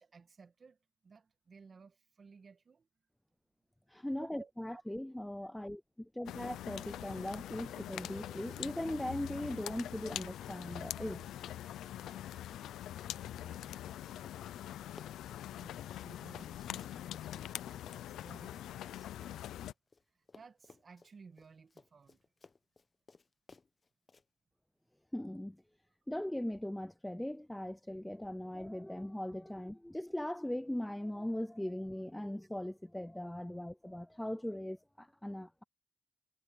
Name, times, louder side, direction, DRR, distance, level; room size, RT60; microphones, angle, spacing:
voice 1, 0.0-2.9 4.2-4.8 6.5-6.6 13.4-13.9 15.6-19.7 20.1-22.2, right 5 dB, 40° right, 1.7 m, -58 dB
voice 2, 3.9-11.4 25.1-25.6 26.1-35.6, left 1 dB, 5° left, 0.3 m, -40 dB
sound 1, 6.3-19.7, left 12 dB, 90° left, 0.6 m, -44 dB
Run, 7.9-8.4 8.7-20.0 20.3-24.2, left 4 dB, 30° left, 0.9 m, -62 dB
cardioid pair, 100°, 0 cm